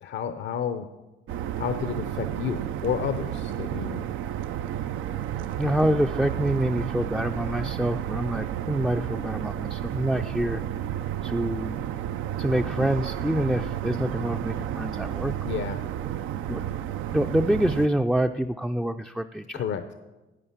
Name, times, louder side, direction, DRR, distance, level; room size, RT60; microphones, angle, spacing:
voice 1, 0.0-0.9 1.5-4.0 15.4-15.8 19.5-19.9, left 8 dB, 70° left, 9 dB, 0.7 m, -31 dB
sound 1, 1.3-17.9, right 11 dB, 85° right, 0.5 m, -31 dB
voice 2, 5.6-10.6 11.2-11.8 12.4-15.3 16.5-16.6 17.1-19.6, right 1 dB, 5° right, 4 dB, 0.4 m, -26 dB
11.0 x 7.8 x 7.3 m, 1.1 s
cardioid pair, 90°, 20 cm